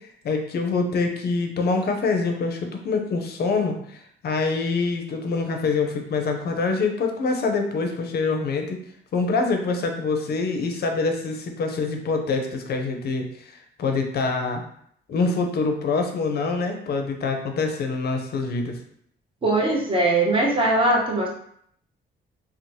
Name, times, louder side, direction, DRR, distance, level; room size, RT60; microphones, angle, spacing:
voice 1, 0.2-8.8 9.1-14.6 15.1-18.8, left 4 dB, 55° left, 4 dB, 0.5 m, -25 dB
voice 2, 19.4-21.3, right 2 dB, 25° right, -3 dB, 0.8 m, -20 dB
3.0 x 2.0 x 2.7 m, 0.67 s
cardioid pair, 90°, 20 cm